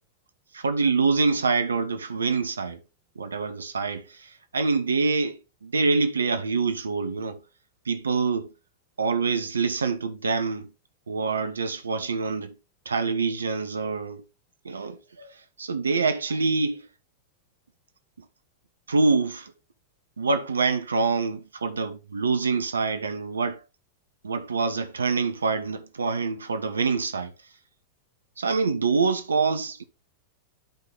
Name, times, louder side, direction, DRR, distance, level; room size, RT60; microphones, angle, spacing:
voice 1, 0.5-2.8 3.2-7.4 7.8-8.5 9.0-10.7 11.1-12.5 12.8-14.2 14.6-16.8 18.9-19.5 20.2-23.6 24.2-27.3 28.4-29.8, right 4 dB, 80° right, 1.0 m, -26 dB
10.5 x 4.1 x 3.9 m
figure-of-eight pair, 95°, 0 cm